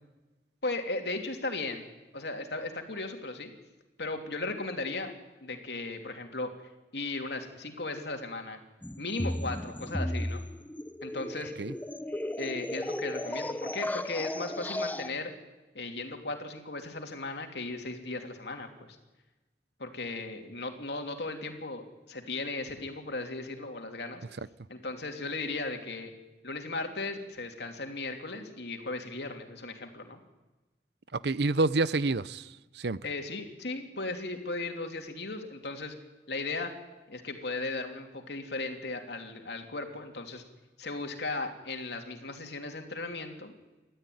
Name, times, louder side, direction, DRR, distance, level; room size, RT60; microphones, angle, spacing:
voice 1, 0.6-1.8 2.1-3.5 4.0-5.1 5.4-6.5 6.9-8.6 9.0-10.4 11.0-11.5 12.4-15.3 15.7-18.9 19.8-24.2 24.7-26.1 26.4-30.2 33.0-35.9 36.3-36.7 37.1-40.4 40.8-43.5, left 3 dB, 70° left, 3.1 m, -36 dB
sound 1, 8.8-15.1, left 1 dB, 10° left, 0.7 m, -35 dB
voice 2, 31.1-33.0, right 3 dB, 65° right, 0.7 m, -28 dB
28.5 x 13.5 x 9.4 m
head